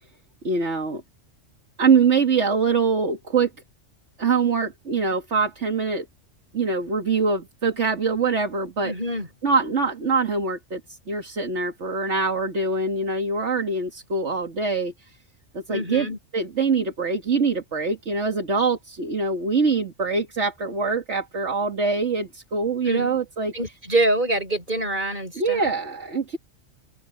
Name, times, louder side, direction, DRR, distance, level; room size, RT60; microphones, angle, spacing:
voice 1, 0.4-1.0 1.8-3.5 4.2-6.1 6.5-8.9 9.4-15.2 15.5-23.5 25.4-26.4, right 4 dB, 65° right, 2.3 m, -24 dB
voice 2, 8.8-9.3 15.7-16.2 22.8-23.2 23.5-25.7, right 1 dB, 40° right, 6.5 m, -25 dB
open air
omnidirectional pair, 1.3 m